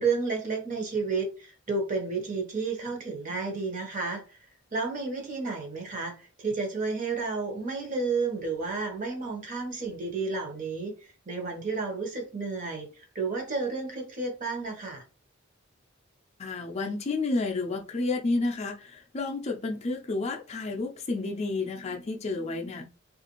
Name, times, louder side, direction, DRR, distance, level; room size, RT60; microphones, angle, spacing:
voice 1, 0.0-11.0 11.3-15.0, right 4 dB, 40° right, 0.9 m, -31 dB
voice 2, 16.4-22.8, left 3 dB, 30° left, 0.4 m, -31 dB
3.3 x 2.5 x 2.9 m
head